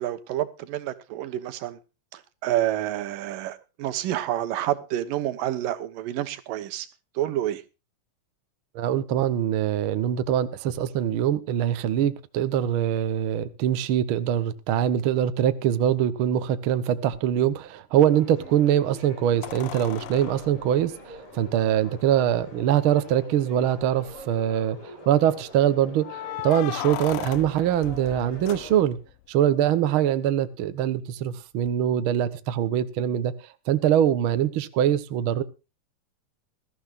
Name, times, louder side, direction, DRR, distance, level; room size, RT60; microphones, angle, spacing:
voice 1, 0.0-1.8 2.1-6.9 7.2-7.6, right 13 dB, 85° right, 2.8 m, -28 dB
voice 2, 8.7-24.8 25.1-29.0 29.3-33.3 33.7-35.4, right 10 dB, 60° right, 1.4 m, -23 dB
sound 1, 17.1-17.2 19.4-21.8 22.8-22.9 23.2-23.3 23.8-24.3 26.0-29.2 31.7-31.8, left 15 dB, 85° left, 2.5 m, -37 dB
sound 2, 17.9-28.8, equal, 40° left, 6.2 m, -44 dB
21.0 x 14.0 x 2.5 m
omnidirectional pair, 3.8 m